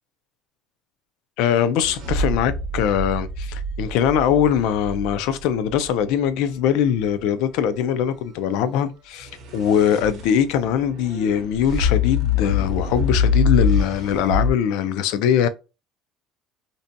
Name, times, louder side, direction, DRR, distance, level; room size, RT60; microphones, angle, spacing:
voice 1, 1.4-15.5, left 9 dB, 70° left, 0.3 m, -21 dB
sound 1, 1.8-5.9 9.2-14.5, left 4 dB, 45° right, 0.6 m, -25 dB
2.6 x 2.1 x 2.5 m
cardioid pair, 175°, 0 cm